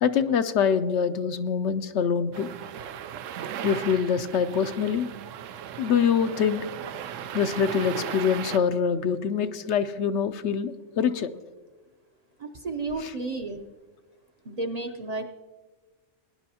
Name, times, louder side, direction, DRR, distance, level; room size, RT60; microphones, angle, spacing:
voice 1, 0.0-2.5 3.6-5.1 5.8-6.6 7.3-11.3 13.0-13.1, left 7 dB, 70° left, 10 dB, 0.9 m, -25 dB
sound 1, 2.3-8.6, right 9 dB, 85° right, 0.9 m, -37 dB
voice 2, 12.4-13.6 14.4-15.2, right 3 dB, 40° right, 4 dB, 0.6 m, -32 dB
19.0 x 10.5 x 2.8 m, 1.3 s
omnidirectional pair, 1.3 m